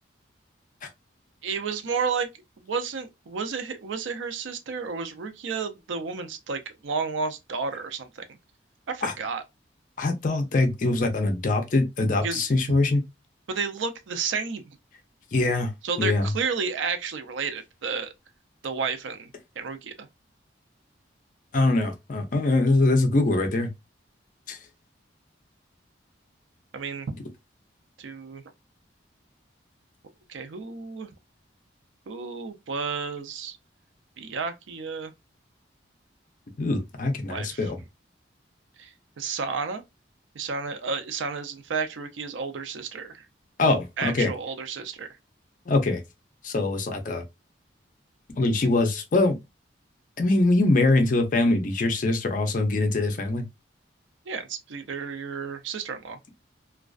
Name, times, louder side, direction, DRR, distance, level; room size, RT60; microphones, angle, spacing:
voice 1, 1.4-2.3 2.6-8.2 8.9-9.4 12.2-12.4 13.5-14.6 15.8-18.1 18.6-19.3 19.6-20.1 26.7-27.1 28.0-28.4 30.3-31.1 32.1-33.6 34.2-35.1 37.3-37.7 38.8-39.8 40.4-43.2 44.0-45.1 54.3-56.2, right 5 dB, 80° right, 0.4 m, -31 dB
voice 2, 10.0-13.0 15.3-15.7 16.0-16.3 21.5-23.7 24.5-24.6 36.6-37.8 43.6-44.3 45.7-46.0 46.4-47.2 48.4-49.4 50.2-53.4, left 2 dB, 45° left, 0.5 m, -23 dB
2.4 x 2.3 x 2.3 m
head